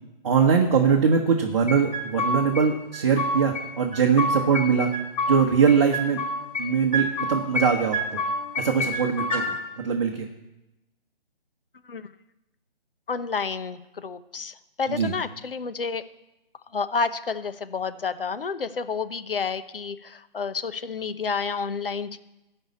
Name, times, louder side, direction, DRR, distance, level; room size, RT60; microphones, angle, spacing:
voice 1, 0.2-4.9 5.3-6.2 6.6-8.2 8.6-9.4 9.8-10.3 14.9-15.1, right 6 dB, 30° right, 0 dB, 1.0 m, -22 dB
sound 1, 1.7-2.6 2.9-3.7 3.9-5.4 5.7-6.7 6.9-7.7 7.9-9.5, left 1 dB, 35° left, 5.4 m, -27 dB
voice 2, 13.1-16.0 16.7-22.2, left 5 dB, 65° left, 12 dB, 0.9 m, -30 dB
13.0 x 5.6 x 8.4 m, 0.95 s
figure-of-eight pair, 150°, 30 cm